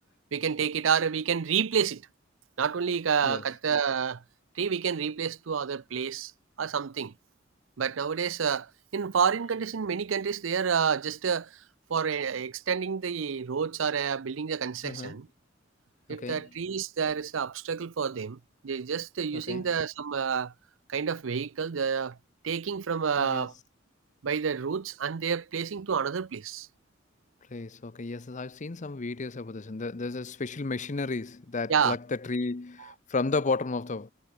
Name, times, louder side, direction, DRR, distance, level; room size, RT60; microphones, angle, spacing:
voice 1, 0.3-2.0 2.6-4.2 4.6-6.3 6.6-7.1 7.8-11.5 11.9-15.3 16.1-20.5 20.9-22.2 22.4-23.5 24.2-26.7 31.7-32.0, right 6 dB, 90° right, 0.6 m, -29 dB
voice 2, 14.8-15.2 16.2-16.5 19.3-19.7 23.2-23.5 27.5-34.1, left 3 dB, 40° left, 0.7 m, -33 dB
head